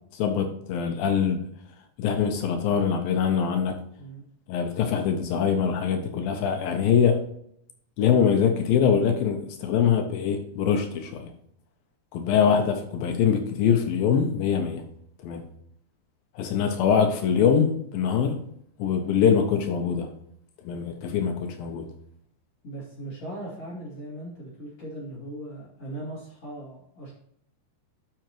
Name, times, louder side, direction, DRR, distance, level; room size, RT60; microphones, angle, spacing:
voice 1, 0.1-1.4 2.0-3.8 4.5-7.2 8.0-11.3 12.1-14.8 15.2-15.4 16.4-18.4 18.8-20.1 20.7-21.9, left 7 dB, 75° left, 6 dB, 2.4 m, -23 dB
voice 2, 22.6-27.1, right 1 dB, 45° left, -7 dB, 3.3 m, -39 dB
12.5 x 5.6 x 3.0 m, 0.71 s
omnidirectional pair, 4.5 m